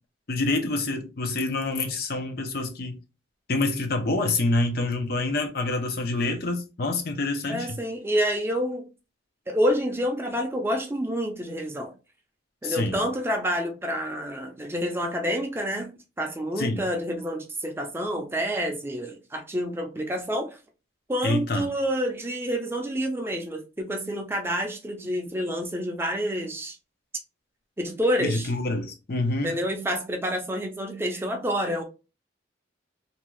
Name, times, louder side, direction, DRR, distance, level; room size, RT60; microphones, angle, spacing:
voice 1, 0.3-2.9 3.5-7.8 12.6-13.0 16.6-16.8 21.2-21.7 28.2-29.5, left 2 dB, 55° left, 0.6 m, -27 dB
voice 2, 7.5-8.9 9.5-11.9 12.6-15.9 16.2-20.6 21.1-26.8 27.8-28.5 29.4-31.8, equal, 15° right, 0.5 m, -28 dB
2.7 x 2.3 x 3.0 m
head